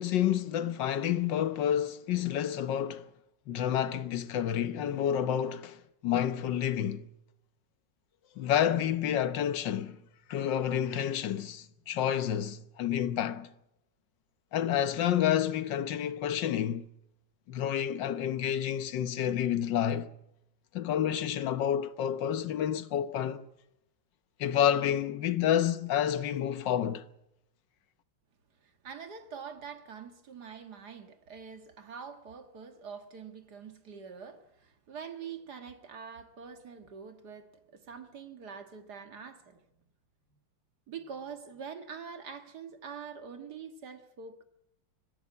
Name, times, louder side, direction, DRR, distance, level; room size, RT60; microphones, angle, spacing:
voice 1, 0.0-3.1 3.5-7.1 8.4-10.0 10.3-13.5 14.5-16.9 17.5-20.1 20.7-23.5 24.4-27.0, left 10 dB, 75° left, 1.7 m, -29 dB
voice 2, 28.6-39.6 40.9-44.4, right 6 dB, 60° right, 2.1 m, -45 dB
25.0 x 15.0 x 8.6 m
omnidirectional pair, 2.0 m